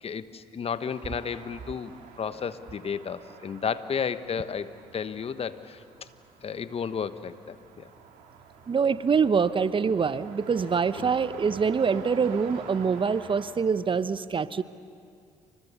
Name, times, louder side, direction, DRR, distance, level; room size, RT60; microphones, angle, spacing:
voice 1, 0.0-1.9 2.2-5.8 6.4-7.9 10.9-11.1, left 6 dB, 45° left, 12 dB, 1.2 m, -33 dB
sound 1, 0.8-13.5, right 6 dB, 70° right, 2.6 m, -48 dB
voice 2, 8.7-14.6, right 6 dB, 35° right, 15 dB, 0.9 m, -25 dB
29.5 x 26.0 x 6.9 m, 2.3 s
hypercardioid pair, 50°, 14 cm